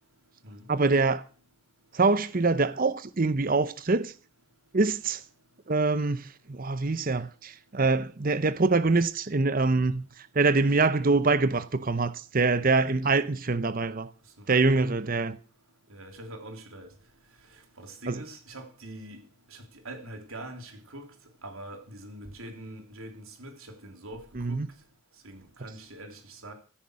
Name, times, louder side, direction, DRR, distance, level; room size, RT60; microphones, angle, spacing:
voice 1, 0.7-1.2 1.9-4.1 4.7-5.2 5.7-14.1 14.5-15.4 18.1-18.2 24.3-24.7, right 3 dB, 40° right, 0.7 m, -25 dB
voice 2, 14.4-14.8 15.9-16.9 17.5-19.2 19.5-21.1 21.4-24.6 25.2-26.5, right 1 dB, 70° right, 3.4 m, -44 dB
16.0 x 10.0 x 6.3 m
head